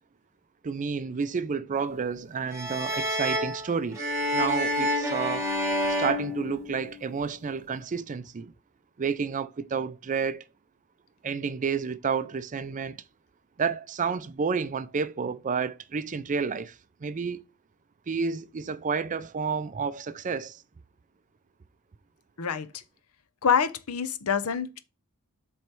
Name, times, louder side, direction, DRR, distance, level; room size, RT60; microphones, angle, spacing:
voice 1, 0.6-5.5 5.9-8.5 9.0-10.5 11.2-13.0 13.6-17.4 18.1-20.6, right 5 dB, 35° right, 0.4 m, -30 dB
sound 1, 2.5-7.1, equal, 15° right, 2.0 m, -29 dB
voice 2, 22.4-22.7 23.4-24.8, left 6 dB, 75° left, 0.7 m, -26 dB
7.5 x 3.1 x 4.5 m
head